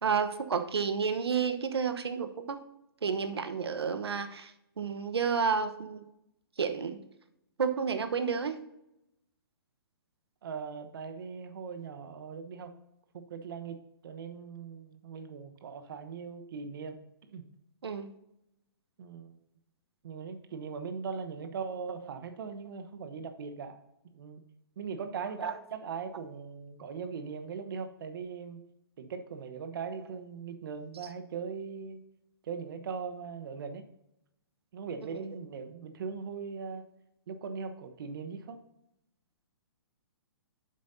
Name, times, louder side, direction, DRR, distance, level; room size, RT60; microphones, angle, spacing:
voice 1, 0.0-2.6 3.0-4.5 4.8-6.0 6.6-7.0 7.6-8.6 17.8-18.1 25.4-25.5 35.1-35.2, right 6 dB, 85° right, 9 dB, 1.0 m, -30 dB
voice 2, 10.4-12.8 13.1-17.0 17.3-17.4 19.0-19.4 20.0-24.4 24.8-28.6 29.0-32.0 32.4-33.8 34.7-36.8 37.3-38.6, right 5 dB, 60° right, 8 dB, 1.1 m, -40 dB
9.5 x 7.5 x 2.7 m, 0.86 s
hypercardioid pair, 140°, 13 cm